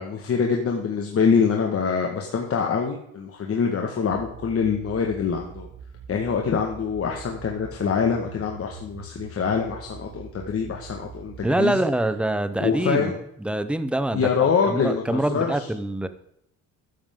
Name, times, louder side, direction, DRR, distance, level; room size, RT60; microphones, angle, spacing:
voice 1, 0.0-5.7 6.1-11.8 12.6-13.1 14.1-15.7, left 6 dB, 45° left, 1 dB, 1.7 m, -25 dB
sound 1, 4.1-11.4, right 8 dB, 55° right, 5.2 m, -43 dB
voice 2, 11.4-16.1, right 1 dB, 5° right, 11 dB, 0.8 m, -25 dB
13.0 x 10.5 x 3.8 m, 0.76 s
cardioid pair, 135°, 33 cm